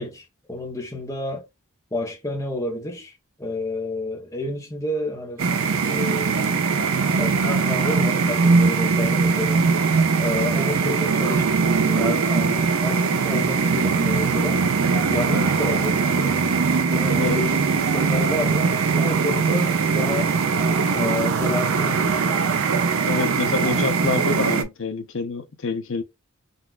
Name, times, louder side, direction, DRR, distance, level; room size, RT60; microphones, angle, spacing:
voice 1, 0.0-1.5 1.9-3.1 3.4-5.5 5.8-6.6 7.2-9.7 10.2-14.7 15.1-16.4 16.9-20.3 20.9-22.5, left 1 dB, 15° left, 0.7 m, -30 dB
sound 1, 5.4-24.6, right 5 dB, 65° right, 0.5 m, -21 dB
voice 2, 23.0-26.0, left 4 dB, 60° left, 0.6 m, -27 dB
3.9 x 2.4 x 2.3 m
head